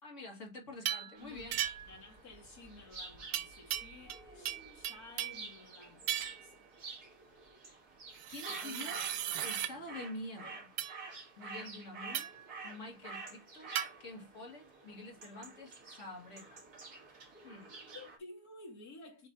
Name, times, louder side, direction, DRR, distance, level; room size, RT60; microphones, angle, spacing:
voice 1, 0.0-1.6 4.0-4.8 8.3-9.0 9.4-10.7 11.4-12.3 12.6-16.6 17.4-17.8, left 2 dB, 45° left, 2.4 m, -47 dB
voice 2, 0.9-6.7 8.5-9.9 17.9-19.3, left 2 dB, 65° left, 2.8 m, -54 dB
sound 1, 0.9-1.1 1.5-2.0 3.3-4.2 4.5-5.5 6.1-6.5 8.2-9.7 10.8-11.0 12.1-12.5 13.8-13.9, right 11 dB, 85° right, 1.2 m, -37 dB
sound 2, 1.2-18.2, right 3 dB, 65° right, 2.4 m, -49 dB
7.0 x 3.2 x 4.1 m
omnidirectional pair, 1.7 m